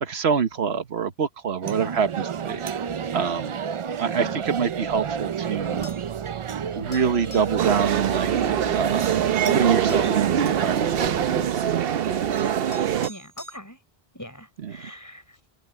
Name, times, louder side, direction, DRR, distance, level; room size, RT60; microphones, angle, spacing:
voice 1, 0.0-2.6 3.1-3.6 4.0-5.9 6.7-8.3 8.7-9.2 9.5-11.1, right 6 dB, 85° right, 1.4 m, -25 dB
sound 1, 1.6-11.5, right 7 dB, 50° right, 0.3 m, -30 dB
voice 2, 4.2-4.6 13.1-13.8 14.1-15.4, equal, 15° left, 5.3 m, -42 dB
Anvil & Steel Hammer, 5.8-6.1 6.9-7.6 8.9-9.0 9.4-10.2 11.7-11.8 12.4-13.6, left 1 dB, 45° left, 6.3 m, -45 dB
sound 2, 7.6-13.1, right 9 dB, 70° right, 0.9 m, -23 dB
open air
omnidirectional pair, 1.0 m